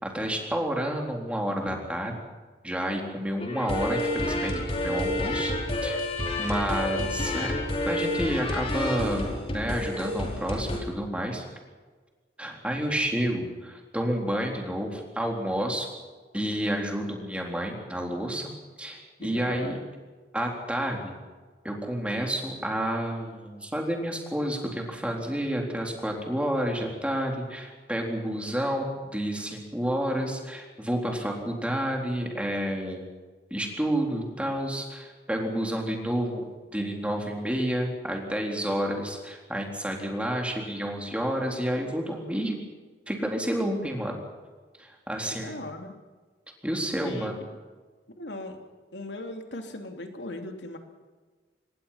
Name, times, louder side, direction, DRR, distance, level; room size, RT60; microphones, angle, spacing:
voice 1, 0.0-2.1 2.6-5.5 5.8-6.0 6.4-7.5 7.9-11.4 12.4-15.9 16.3-18.5 18.8-19.8 20.3-21.2 21.6-33.0 33.5-36.4 36.7-42.6 43.1-44.2 44.8-45.6 46.6-47.3, equal, 5° right, 1 dB, 3.9 m, -30 dB
sound 1, 3.4-10.8, left 1 dB, 35° left, 4.5 m, -29 dB
voice 2, 19.2-19.8 45.3-45.9 47.0-47.4 48.2-48.6 48.9-50.8, left 1 dB, 80° left, 4 dB, 3.0 m, -38 dB
26.0 x 20.5 x 5.9 m, 1.4 s
head